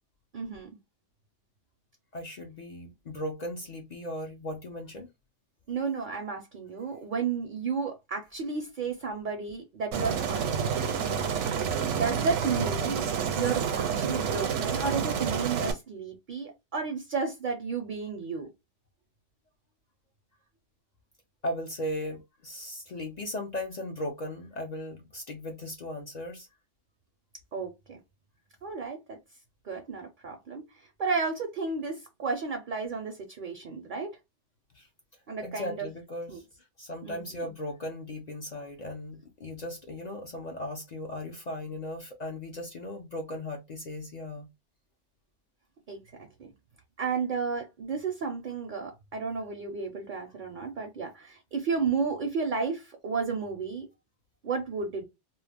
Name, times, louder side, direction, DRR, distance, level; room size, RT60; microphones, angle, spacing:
voice 1, 0.3-0.7 5.7-10.5 11.9-13.0 13.3-18.5 27.5-28.0 28.6-29.2 29.6-34.1 35.3-35.9 36.3-36.4 37.0-37.5 45.9-46.0 46.4-46.5 47.0-53.9 54.4-55.0, right 5 dB, 55° right, 0.6 m, -32 dB
voice 2, 2.1-5.1 21.4-26.5 34.7-34.9 35.4-36.4 36.8-44.5, left 1 dB, 55° left, 0.4 m, -37 dB
Aircraft, 9.9-15.7, right 7 dB, 80° right, 0.9 m, -29 dB
2.3 x 2.0 x 3.3 m
omnidirectional pair, 1.2 m